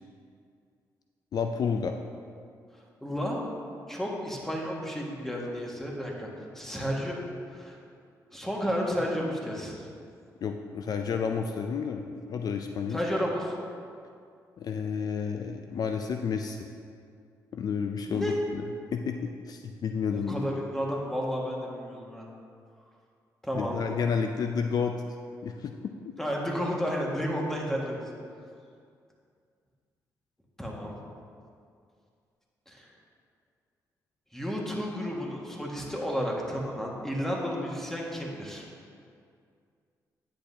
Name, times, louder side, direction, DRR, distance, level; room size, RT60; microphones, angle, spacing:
voice 1, 1.3-1.9 10.4-13.0 14.6-16.7 17.5-18.6 18.9-20.5 23.5-25.0 25.4-25.9, left 6 dB, 60° left, 5 dB, 0.4 m, -31 dB
voice 2, 3.0-3.4 3.9-6.3 6.5-7.2 7.5-7.8 8.3-9.8 12.9-13.5 18.1-18.3 20.1-22.3 23.4-23.8 26.2-28.0 30.6-31.0 32.7-32.9 34.3-38.7, equal, 5° left, -2 dB, 1.8 m, -32 dB
10.0 x 8.1 x 2.8 m, 2.3 s
cardioid pair, 70°, 7 cm